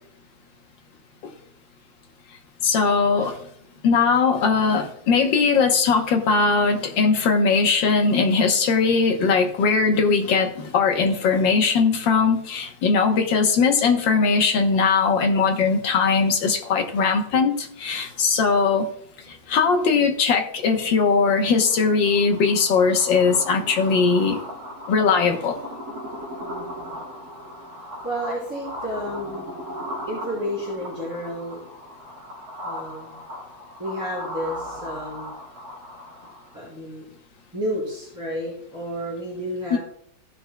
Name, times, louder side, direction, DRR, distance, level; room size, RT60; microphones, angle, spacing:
voice 1, 2.6-3.4 3.8-18.9 19.5-24.4 24.9-25.5 39.7-39.8, left 5 dB, 65° left, 3 dB, 1.7 m, -20 dB
sound 1, 21.3-36.6, equal, 70° right, 2.6 m, -37 dB
voice 2, 28.0-29.5 30.1-31.6 32.6-33.2 33.8-35.3 36.5-37.1 37.5-39.8, equal, 10° right, -10 dB, 3.9 m, -31 dB
17.0 x 5.8 x 2.2 m, 0.68 s
omnidirectional pair, 2.3 m